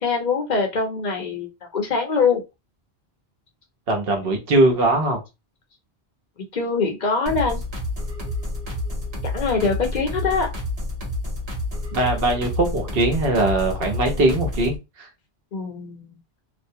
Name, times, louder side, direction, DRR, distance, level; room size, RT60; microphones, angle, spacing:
voice 1, 0.0-2.4 6.4-7.6 9.2-10.5 15.5-16.1, left 4 dB, 50° left, 0.7 m, -23 dB
voice 2, 3.9-5.2 11.9-15.1, right 2 dB, 65° right, 1.0 m, -21 dB
sound 1, 7.3-14.8, left 1 dB, 35° right, 1.0 m, -29 dB
2.5 x 2.1 x 2.7 m
omnidirectional pair, 1.1 m